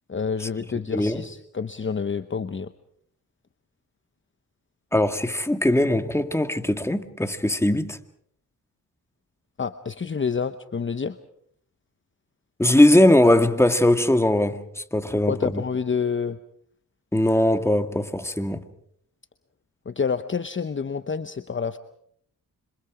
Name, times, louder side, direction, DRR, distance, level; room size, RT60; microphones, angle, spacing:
voice 1, 0.1-2.7 9.6-11.2 15.1-16.4 19.8-21.8, left 5 dB, 30° left, 0.9 m, -28 dB
voice 2, 0.9-1.2 4.9-8.0 12.6-15.6 17.1-18.7, left 1 dB, 5° left, 1.9 m, -20 dB
27.0 x 26.0 x 5.0 m
cardioid pair, 65°, 36 cm